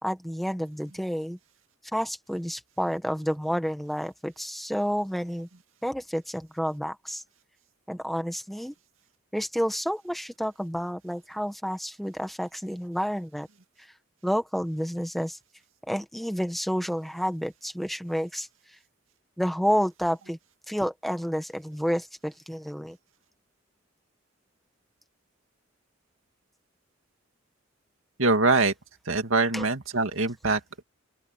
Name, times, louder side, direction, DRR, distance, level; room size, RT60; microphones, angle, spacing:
voice 1, 0.0-1.4 1.9-5.5 5.8-7.2 7.9-8.7 9.3-13.5 14.2-15.4 15.9-18.5 19.4-20.4 20.7-23.0 29.5-29.6, equal, ahead, 1.6 m, -30 dB
voice 2, 28.2-28.7 29.1-30.8, right 3 dB, 85° right, 2.2 m, -24 dB
open air
head